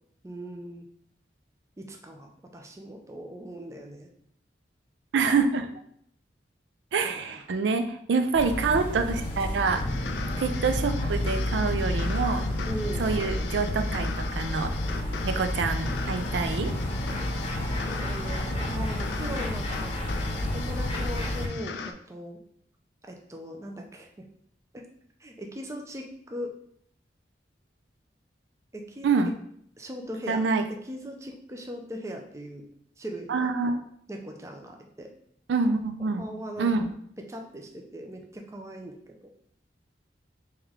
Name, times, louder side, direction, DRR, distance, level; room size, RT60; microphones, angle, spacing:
voice 1, 0.2-0.9 1.8-4.1 7.0-7.4 12.6-13.2 17.8-20.0 20.4-22.4 23.1-24.2 24.7-24.8 25.2-26.6 28.7-29.1 29.8-30.4 30.9-32.6 33.0-33.5 34.1-35.1 36.2-36.9 37.3-39.2, equal, 15° right, 2 dB, 0.4 m, -39 dB
voice 2, 5.1-5.7 6.9-9.8 10.4-12.5 13.0-14.7 15.2-16.7 29.0-29.3 30.3-30.6 33.3-33.8 35.5-36.2 36.6-36.9, right 4 dB, 90° right, 7 dB, 0.4 m, -26 dB
sound 1, 8.3-21.5, left 1 dB, 35° left, 0.7 m, -30 dB
sound 2, 9.6-21.9, left 4 dB, 75° left, 0.4 m, -37 dB
3.3 x 3.0 x 3.5 m, 0.66 s
head